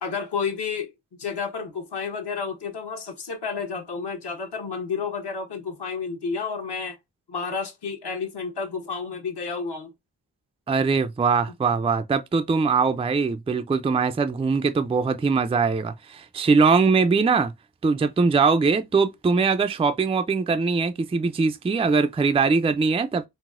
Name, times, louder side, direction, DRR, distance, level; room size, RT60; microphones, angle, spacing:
voice 1, 0.0-0.9 1.2-7.0 7.3-9.9, left 5 dB, 65° left, 1.1 m, -31 dB
voice 2, 10.7-17.5 17.8-23.3, right 4 dB, 15° right, 0.4 m, -22 dB
4.0 x 2.0 x 2.4 m
cardioid pair, 55°, 44 cm